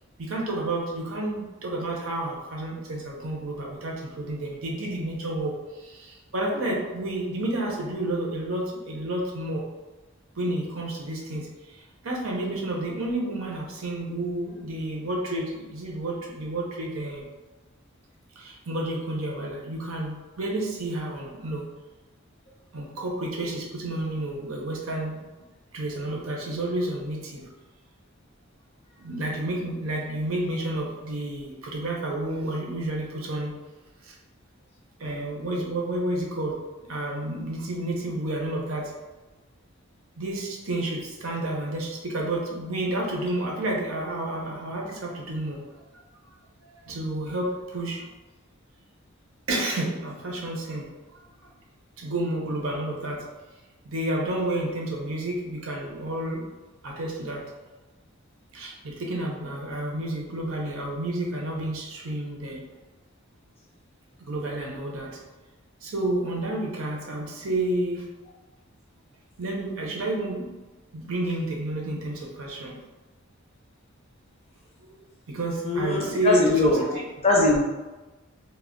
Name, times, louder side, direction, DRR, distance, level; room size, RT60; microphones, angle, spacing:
voice 1, 0.2-9.6 10.4-17.3 18.4-21.7 22.7-25.2 25.7-27.4 29.0-33.5 34.0-34.1 35.0-36.5 36.9-38.9 40.2-45.6 46.8-48.0 49.5-50.9 51.2-51.3 52.0-53.2 53.8-56.4 56.8-57.4 58.5-62.6 64.2-65.1 65.8-68.0 69.4-70.5 70.9-72.8 74.8-75.0 75.3-76.7, right 1 dB, 80° right, -1 dB, 0.6 m, -30 dB
voice 2, 75.6-77.6, left 2 dB, 30° left, -3 dB, 0.5 m, -22 dB
2.2 x 2.1 x 3.6 m, 1.2 s
head